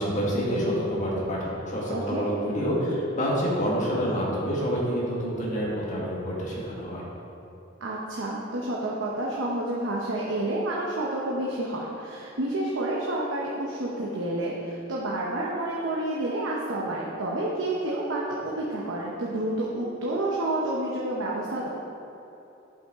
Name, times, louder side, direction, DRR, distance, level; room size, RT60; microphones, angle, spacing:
voice 1, 0.0-7.0, equal, 40° left, -5 dB, 1.6 m, -27 dB
voice 2, 1.9-2.2 7.8-21.7, right 1 dB, 80° right, -4 dB, 0.9 m, -29 dB
8.5 x 5.7 x 3.6 m, 3.0 s
head